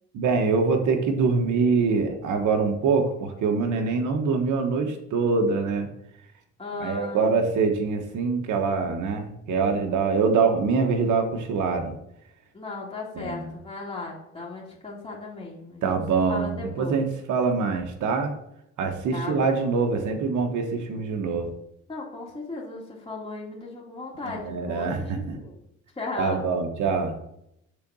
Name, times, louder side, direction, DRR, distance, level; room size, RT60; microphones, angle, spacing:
voice 1, 0.1-5.9 6.8-11.9 13.2-13.5 15.8-18.3 18.8-21.5 24.3-25.4 26.2-27.1, right 4 dB, 75° right, 4 dB, 1.3 m, -24 dB
voice 2, 6.6-7.4 12.5-17.1 19.1-19.5 21.9-25.6 26.0-26.4, left 3 dB, 15° left, -5 dB, 2.3 m, -36 dB
6.9 x 4.0 x 6.2 m, 0.77 s
cardioid pair, 90°, 30 cm